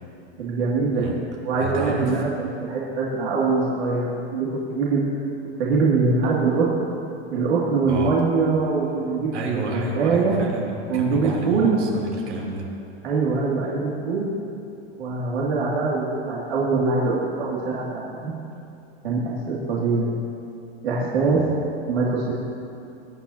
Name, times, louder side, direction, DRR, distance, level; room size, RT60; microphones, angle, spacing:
voice 1, 0.4-1.2 1.4-5.0 5.6-6.7 7.3-9.3 9.7-10.3 10.9-11.8 13.0-14.3 15.0-18.3 19.0-20.2 20.8-21.4 21.9-22.3, right 4 dB, 70° right, -6 dB, 2.5 m, -23 dB
voice 2, 1.6-2.2 7.9-8.2 9.3-12.7 21.3-21.5, right 3 dB, 90° right, -2 dB, 3.3 m, -30 dB
22.0 x 10.0 x 2.8 m, 2.7 s
supercardioid pair, 155°, 33 cm